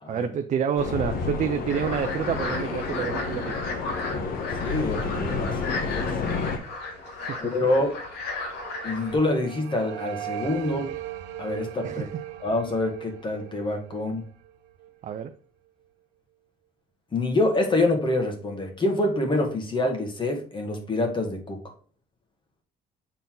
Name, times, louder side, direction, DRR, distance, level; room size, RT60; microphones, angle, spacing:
voice 1, 0.1-3.6 7.0-7.5 11.8-12.1 15.0-15.3, right 8 dB, 45° right, 0.5 m, -28 dB
sound 1, 0.8-6.6, left 4 dB, 60° left, 1.2 m, -30 dB
sound 2, 1.7-9.2, left 3 dB, 80° left, 2.0 m, -35 dB
voice 2, 4.6-6.2 7.4-8.0 8.8-10.9 11.4-12.0 12.4-14.2 17.1-21.6, left 2 dB, 30° left, 1.9 m, -26 dB
sound 3, 8.2-15.2, right 12 dB, 80° right, 0.8 m, -39 dB
7.0 x 4.2 x 3.9 m
cardioid pair, 110°, 17 cm